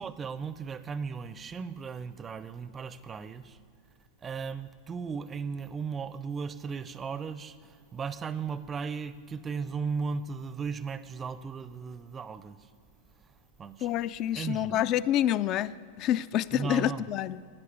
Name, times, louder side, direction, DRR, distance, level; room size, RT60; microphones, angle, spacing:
voice 1, 0.0-3.6 4.2-7.6 7.9-12.6 13.6-13.9 14.3-14.9 16.5-17.1, right 5 dB, 20° right, 0.5 m, -36 dB
voice 2, 13.8-17.4, left 11 dB, 35° left, 0.3 m, -28 dB
11.5 x 9.6 x 6.7 m
figure-of-eight pair, 90°, 0 cm